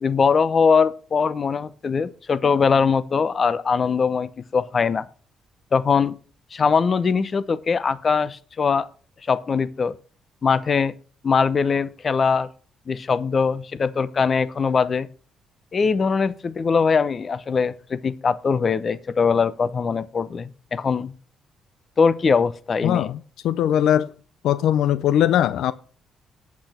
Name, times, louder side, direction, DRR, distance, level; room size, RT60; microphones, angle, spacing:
voice 1, 0.0-5.1 5.7-6.2 6.5-8.9 9.3-9.9 10.4-10.9 11.2-12.5 12.9-15.1 15.7-21.1 22.0-23.1, left 5 dB, 40° left, 0.8 m, -21 dB
voice 2, 22.8-23.2 23.4-24.1 24.4-25.7, left 10 dB, 80° left, 0.5 m, -20 dB
8.6 x 8.4 x 4.3 m
cardioid pair, 90°, 0 cm